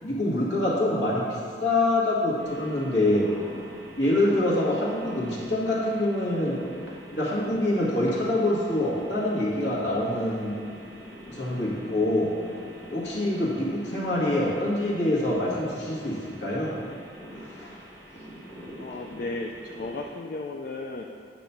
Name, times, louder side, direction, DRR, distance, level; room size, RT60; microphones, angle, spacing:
voice 1, 0.0-3.3 4.0-6.6 7.1-10.6 11.3-12.3 12.9-16.7 17.4-17.7 18.9-19.0, left 1 dB, 75° left, -6 dB, 1.7 m, -25 dB
sound 1, 2.4-20.1, equal, 15° left, 1.7 m, -44 dB
voice 2, 18.8-21.1, left 2 dB, 50° left, 0 dB, 0.3 m, -34 dB
8.5 x 3.0 x 5.7 m, 2.4 s
head